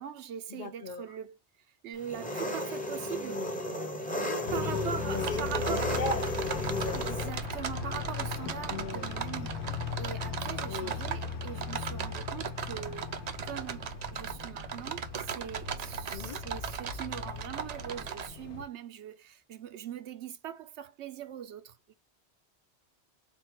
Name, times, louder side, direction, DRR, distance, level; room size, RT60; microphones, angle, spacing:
voice 1, 0.0-1.4 1.8-3.5 4.5-6.0 6.9-9.6 10.0-13.1 13.4-21.9, right 9 dB, 85° right, 0.9 m, -41 dB
voice 2, 0.5-1.0 4.4-7.1 8.7-9.1 10.7-11.0 16.1-16.4, left 3 dB, 50° left, 0.7 m, -37 dB
Engine, 2.0-7.3, left 1 dB, 10° left, 0.7 m, -34 dB
sound 1, 4.5-18.6, left 6 dB, 85° left, 1.0 m, -39 dB
sound 2, 5.2-18.3, right 7 dB, 55° right, 0.4 m, -38 dB
3.6 x 2.2 x 4.4 m
omnidirectional pair, 1.1 m